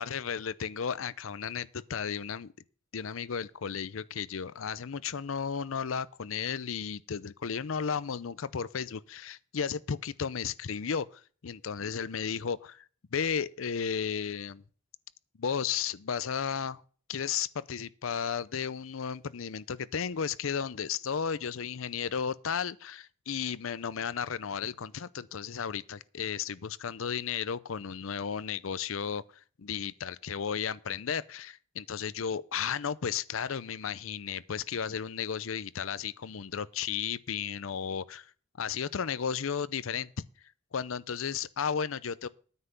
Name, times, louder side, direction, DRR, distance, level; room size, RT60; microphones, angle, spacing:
voice 1, 0.0-2.5 2.9-12.9 13.1-14.6 15.4-16.8 17.1-29.3 29.6-38.3 38.6-40.1 40.7-42.3, left 7 dB, 75° left, 0.6 m, -34 dB
9.7 x 5.6 x 8.1 m
head